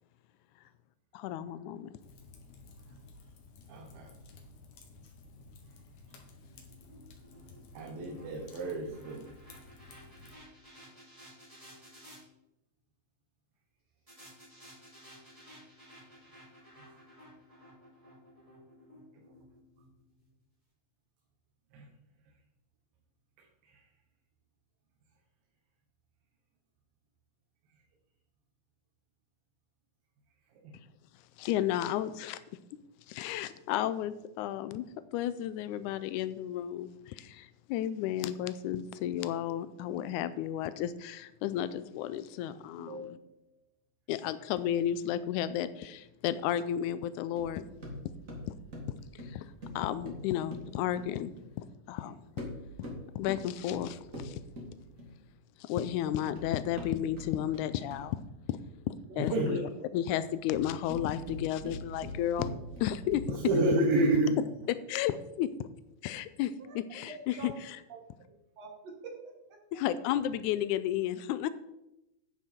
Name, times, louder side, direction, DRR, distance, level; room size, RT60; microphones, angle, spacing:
voice 1, 1.1-1.9 31.4-32.4 33.1-34.9 35.1-43.2 44.1-47.7 48.5-48.6 49.1-49.5 49.8-51.3 51.6-52.2 53.2-54.4 55.6-58.2 58.5-58.6 58.9-59.6 59.9-62.5 62.8-63.2 64.9-65.5 66.0-67.5 69.7-71.5, left 11 dB, 85° left, 13 dB, 1.7 m, -33 dB
Fire, 2.0-10.3, left 3 dB, 65° left, 2.8 m, -54 dB
voice 2, 3.7-4.1 7.7-9.3 16.9-17.0 21.7-21.9 23.6-23.8 30.6-30.7 42.8-43.5 59.2-59.7 63.3-64.5, right 2 dB, 85° right, 1 dB, 3.1 m, -30 dB
sound 1, 6.0-12.2 14.1-20.3, equal, 10° right, 2.7 m, -55 dB
sound 2, 47.4-51.5 52.2-55.3 56.0-58.3 60.3-63.5, left 1 dB, 25° right, 2.2 m, -43 dB
voice 3, 66.6-67.5 67.9-68.0 68.6-69.8, right 4 dB, 55° right, 1 dB, 2.5 m, -47 dB
11.0 x 9.0 x 4.4 m, 0.89 s
omnidirectional pair, 4.0 m